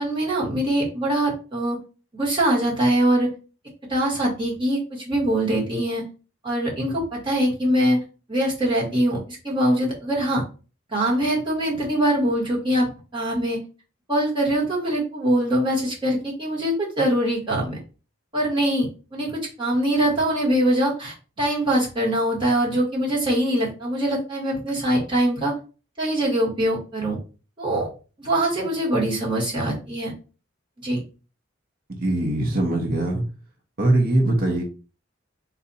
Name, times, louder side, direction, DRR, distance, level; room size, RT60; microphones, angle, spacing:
voice 1, 0.0-1.8 2.1-3.3 3.9-6.0 6.4-8.0 8.3-9.2 9.4-10.4 10.9-13.6 14.1-17.8 18.3-19.3 19.6-25.5 26.0-27.2 27.6-27.9 28.2-30.1 30.8-31.0, right 1 dB, 25° right, -4 dB, 1.7 m, -23 dB
voice 2, 32.0-33.2 33.8-34.6, right 1 dB, 45° right, 1 dB, 0.9 m, -21 dB
4.1 x 2.7 x 4.1 m, 0.35 s
head